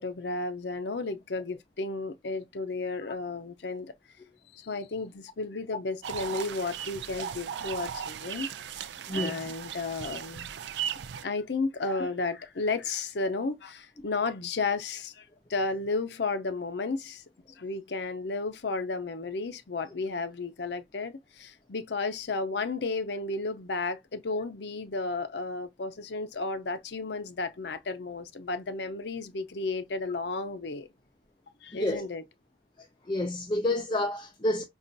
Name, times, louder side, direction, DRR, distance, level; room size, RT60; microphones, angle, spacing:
voice 1, 0.0-3.9 4.5-10.5 11.2-17.2 17.6-30.9 31.6-32.2, left 3 dB, 80° left, 0.6 m, -33 dB
sound 1, 6.0-11.2, right 8 dB, 85° right, 0.4 m, -37 dB
voice 2, 9.1-9.4 11.8-12.0 31.7-32.1 33.1-34.6, left 1 dB, 25° left, 0.5 m, -29 dB
5.2 x 2.4 x 2.6 m
head